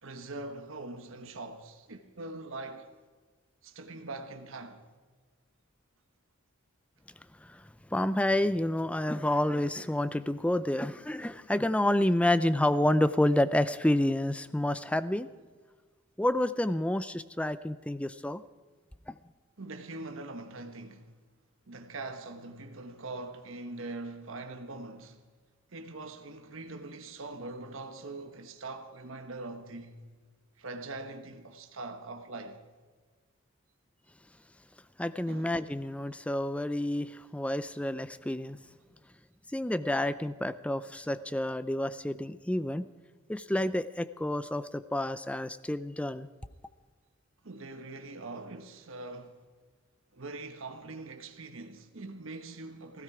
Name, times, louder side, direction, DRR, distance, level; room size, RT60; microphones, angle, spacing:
voice 1, 0.0-2.9 3.6-4.8 19.6-21.1 21.7-25.2 25.7-30.0 30.6-32.6 35.3-35.5 47.4-49.4 50.1-53.0, right 2 dB, 75° right, 1.1 m, -42 dB
voice 2, 7.9-15.3 16.2-18.4 19.1-19.2 35.0-38.6 39.5-42.9 43.3-46.3, left 1 dB, 5° left, 0.4 m, -29 dB
16.5 x 15.5 x 4.8 m
head